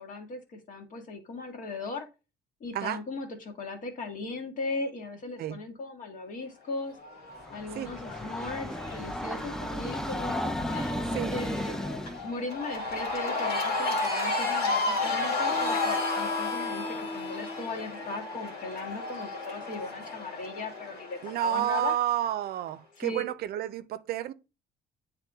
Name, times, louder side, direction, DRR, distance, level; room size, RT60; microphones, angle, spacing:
voice 1, 0.0-2.1 2.6-7.0 7.5-11.0 11.3-11.8 12.2-22.0 23.0-23.3, left 3 dB, 50° left, 1.6 m, -38 dB
Cheering / Crowd, 7.0-22.3, left 3 dB, 75° left, 2.4 m, -33 dB
Train, 7.4-12.3, left 1 dB, 5° left, 0.4 m, -34 dB
Harmonica, 15.5-20.7, left 4 dB, 30° left, 1.3 m, -38 dB
voice 2, 21.2-24.3, right 12 dB, 65° right, 0.5 m, -30 dB
8.3 x 3.5 x 3.5 m
cardioid pair, 110°, 17 cm